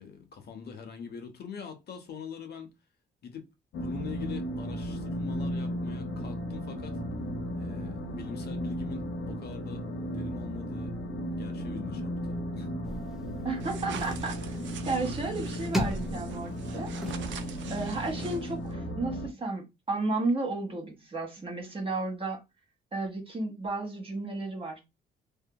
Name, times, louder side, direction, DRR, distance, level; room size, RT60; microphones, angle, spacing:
voice 1, 0.0-2.7 3.2-7.0 7.6-11.0 11.3-12.7, left 7 dB, 55° left, 0.8 m, -43 dB
sound 1, 3.7-19.3, equal, 85° left, 0.9 m, -35 dB
sound 2, 12.8-18.1, equal, ahead, 0.6 m, -38 dB
voice 2, 13.4-14.4 14.8-16.9 17.7-22.4 22.9-24.8, right 3 dB, 30° right, 1.1 m, -33 dB
sound 3, 13.6-18.7, right 7 dB, 70° right, 0.5 m, -44 dB
2.7 x 2.6 x 2.2 m
cardioid pair, 90°, 20 cm